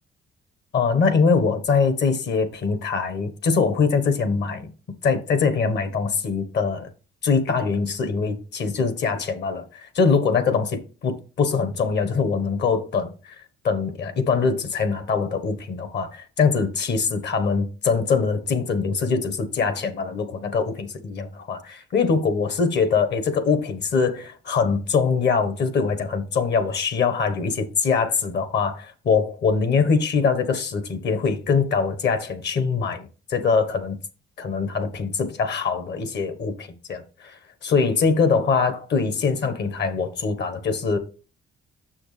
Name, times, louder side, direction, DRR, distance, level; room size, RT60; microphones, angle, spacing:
voice 1, 0.7-4.7 5.0-6.9 7.2-34.0 34.4-41.0, left 5 dB, 60° left, 1.2 m, -23 dB
6.6 x 6.2 x 3.2 m
cardioid pair, 90°, 20 cm